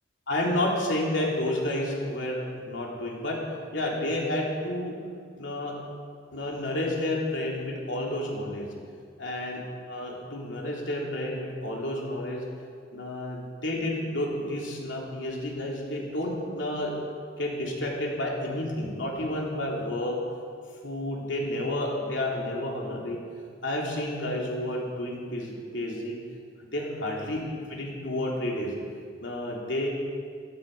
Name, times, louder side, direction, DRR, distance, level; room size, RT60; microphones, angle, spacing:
voice 1, 0.3-3.4 3.7-4.9 5.4-5.7 6.3-8.7 9.2-12.4 12.9-16.9 17.4-20.2 20.8-23.2 23.6-26.2 26.7-27.4 27.7-28.7 29.2-29.9, left 1 dB, 75° left, -2 dB, 3.2 m, -30 dB
16.0 x 13.5 x 5.5 m, 2.2 s
head